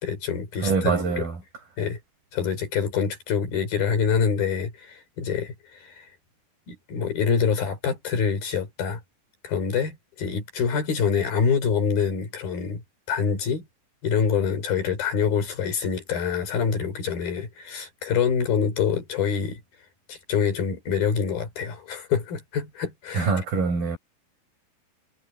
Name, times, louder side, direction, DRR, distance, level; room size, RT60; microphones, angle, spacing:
voice 1, 0.0-1.3 1.8-2.0 2.3-6.0 6.7-9.0 9.4-12.8 13.1-13.6 14.0-19.6 20.1-23.3, left 6 dB, 90° left, 6.2 m, -26 dB
voice 2, 0.6-1.4 23.1-24.0, right 5 dB, 80° right, 6.6 m, -24 dB
omnidirectional pair, 4.1 m